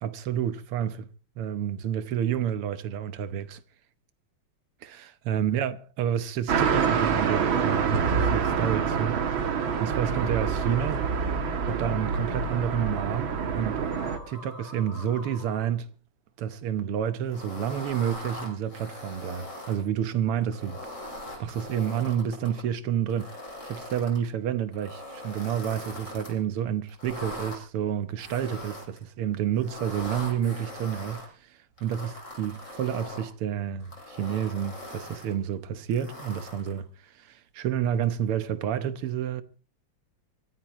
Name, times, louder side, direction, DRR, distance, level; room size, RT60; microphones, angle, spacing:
voice 1, 0.0-1.1 1.4-3.6 4.8-11.1 11.6-13.8 14.3-15.9 16.4-20.8 21.4-23.3 23.6-39.4, right 9 dB, 90° right, 2.0 m, -30 dB
sound 1, 6.5-14.2, right 6 dB, 65° right, 2.3 m, -26 dB
sound 2, 8.1-15.7, left 1 dB, 85° left, 4.3 m, -47 dB
sound 3, 17.3-19.8 20.4-22.6 23.1-24.2 24.7-26.3 26.9-27.6 28.2-29.0 29.6-31.3 31.8-33.3 33.8-35.3 35.9-36.8, left 1 dB, 35° left, 6.3 m, -41 dB
25.0 x 14.0 x 3.1 m
omnidirectional pair, 2.4 m